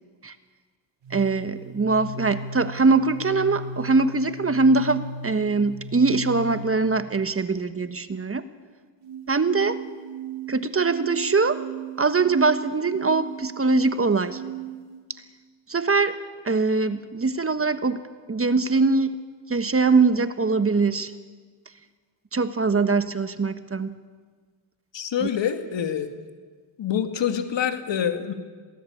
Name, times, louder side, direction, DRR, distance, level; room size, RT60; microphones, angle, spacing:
sound 1, 1.0-7.0 9.0-15.0, right 4 dB, 60° right, 4.1 m, -37 dB
voice 1, 1.1-8.5 9.3-9.8 10.5-11.6 12.0-14.4 15.7-16.2 16.4-18.0 18.3-19.2 19.5-21.1 22.3-23.9 25.2-25.3, right 4 dB, 30° right, 10 dB, 1.5 m, -22 dB
voice 2, 24.9-26.1 26.8-28.3, left 8 dB, 65° left, 6 dB, 2.5 m, -26 dB
22.0 x 18.0 x 8.7 m, 1.5 s
cardioid pair, 65°, 48 cm